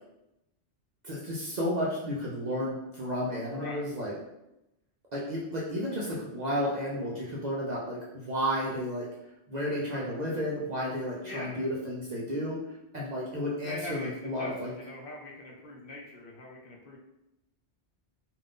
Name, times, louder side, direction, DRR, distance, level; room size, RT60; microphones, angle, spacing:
voice 1, 1.0-4.1 5.1-8.0 8.2-9.0 9.5-12.6 12.9-14.7, equal, 50° right, -5 dB, 0.5 m, -32 dB
voice 2, 11.2-11.6 13.6-17.0, left 2 dB, 60° left, -2 dB, 0.7 m, -42 dB
2.5 x 2.4 x 3.5 m, 0.90 s
omnidirectional pair, 1.2 m